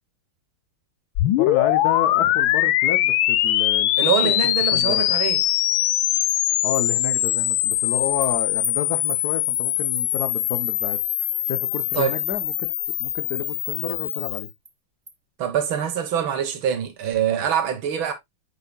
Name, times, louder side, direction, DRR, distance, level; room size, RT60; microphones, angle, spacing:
sound 1, 1.2-14.5, left 14 dB, 75° left, 1.3 m, -22 dB
voice 1, 1.2-5.0 6.6-11.0 11.5-12.7 13.0-14.5, left 9 dB, 60° left, 1.1 m, -30 dB
voice 2, 4.0-5.4 11.9-12.2 15.4-18.1, right 8 dB, 70° right, 1.9 m, -24 dB
Animal, 6.3-6.4 6.7-6.8 7.3-7.4 7.7-7.8 8.2-8.3 8.6-8.7 9.1-9.2 9.5-9.6 10.0-10.1 10.4-10.5 10.9-11.0 11.4-11.5 11.8-11.9 12.2-12.6 12.9-13.0 13.3-13.4 13.7-13.8 14.2-14.3 14.7-14.8 15.1-15.2, right 4 dB, 50° right, 0.4 m, -37 dB
8.2 x 5.6 x 2.2 m
omnidirectional pair, 2.3 m